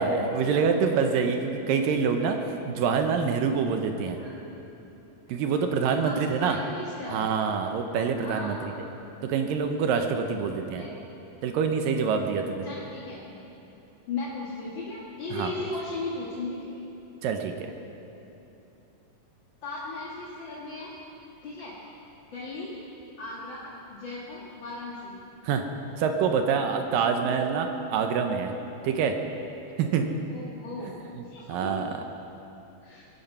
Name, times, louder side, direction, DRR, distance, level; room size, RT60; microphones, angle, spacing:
voice 1, 0.0-2.4 2.7-4.2 5.3-6.6 7.1-8.6 9.2-10.9 11.4-12.7 15.3-15.5 17.2-17.7 25.4-25.6 26.0-28.5 28.8-29.2 29.8-30.1 31.2-31.9, right 6 dB, 75° right, 5 dB, 2.4 m, -26 dB
voice 2, 5.5-7.3 8.1-8.6 10.7-10.9 12.6-13.2 14.1-16.7 19.6-20.9 21.4-21.7 22.3-22.7 23.2-25.2 30.3-32.0 32.8-33.0, left 2 dB, 45° left, -6 dB, 1.8 m, -37 dB
22.0 x 11.5 x 5.5 m, 2.9 s
omnidirectional pair, 4.3 m